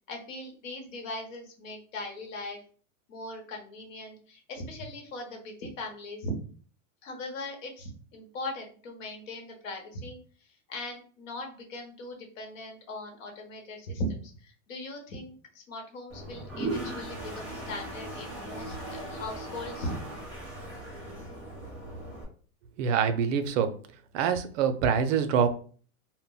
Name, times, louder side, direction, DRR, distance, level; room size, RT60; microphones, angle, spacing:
voice 1, 0.1-2.6 3.1-6.3 7.0-10.2 10.7-19.9, left 1 dB, 70° left, 2 dB, 1.0 m, -39 dB
Toilet flush, 16.1-22.2, right 1 dB, 5° right, 0.7 m, -38 dB
voice 2, 22.8-23.7 24.1-25.5, right 7 dB, 65° right, 9 dB, 0.5 m, -25 dB
2.1 x 2.0 x 3.8 m, 0.42 s
supercardioid pair, 145°, 41 cm